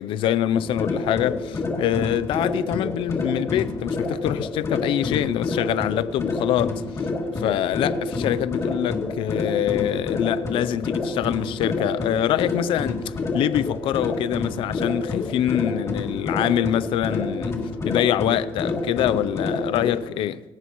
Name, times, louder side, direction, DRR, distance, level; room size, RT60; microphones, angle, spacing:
voice 1, 0.0-7.1 7.4-17.6 17.8-20.4, left 12 dB, 85° left, 0.6 m, -25 dB
sound 1, 0.5-20.0, left 3 dB, 35° left, 2.8 m, -28 dB
23.5 x 19.5 x 3.1 m
cardioid pair, 145°, 9 cm